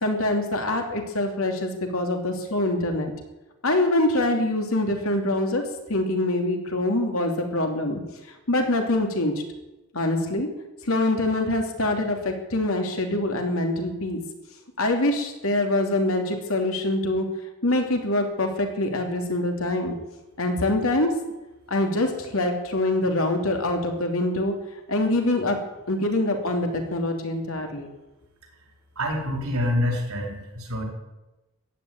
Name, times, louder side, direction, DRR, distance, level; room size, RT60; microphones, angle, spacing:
voice 1, 0.0-3.1 3.6-8.0 8.5-9.3 9.9-10.5 10.9-14.2 14.8-17.3 17.6-19.9 20.4-21.2 21.7-24.5 24.9-25.6 25.9-27.9, left 1 dB, 70° left, 3 dB, 2.9 m, -24 dB
voice 2, 29.0-30.8, left 1 dB, 80° right, 1 dB, 4.6 m, -26 dB
15.0 x 9.7 x 9.5 m, 1.0 s
head